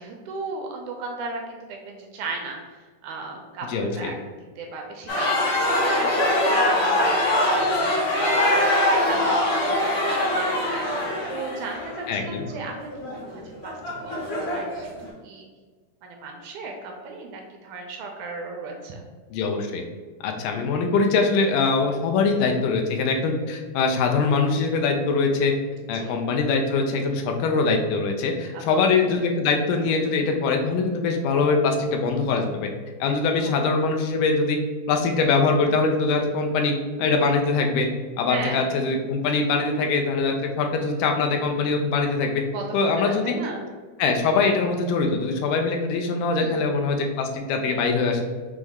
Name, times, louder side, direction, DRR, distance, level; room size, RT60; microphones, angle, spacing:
voice 1, 0.0-4.1 4.6-7.3 7.6-10.9 11.3-14.9 15.2-15.5 16.0-19.0 25.9-26.2 28.5-28.8 32.1-32.4 33.1-33.6 38.3-38.7 42.5-43.7 46.4-46.7, right 3 dB, 80° right, 2 dB, 1.9 m, -36 dB
voice 2, 3.6-4.1 12.1-12.4 19.3-19.8 20.2-25.5 25.9-32.7 33.0-34.6 34.9-37.9 38.2-42.4 42.7-43.4 44.0-48.2, left 4 dB, 85° left, 3 dB, 2.1 m, -23 dB
sound 1, 5.1-15.0, left 1 dB, 65° left, 1.4 m, -23 dB
6.2 x 2.1 x 3.4 m, 1.4 s
omnidirectional pair, 3.7 m